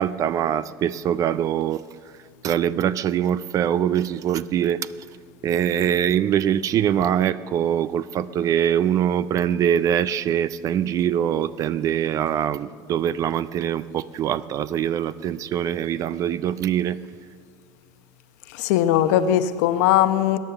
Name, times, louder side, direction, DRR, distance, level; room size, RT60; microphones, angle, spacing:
voice 1, 0.0-1.8 2.4-4.9 5.4-17.0, right 9 dB, 40° right, 17 dB, 0.4 m, -23 dB
voice 2, 18.5-20.4, left 11 dB, 75° left, 11 dB, 0.9 m, -19 dB
21.5 x 9.6 x 6.8 m, 2.2 s
supercardioid pair, 125°, 9 cm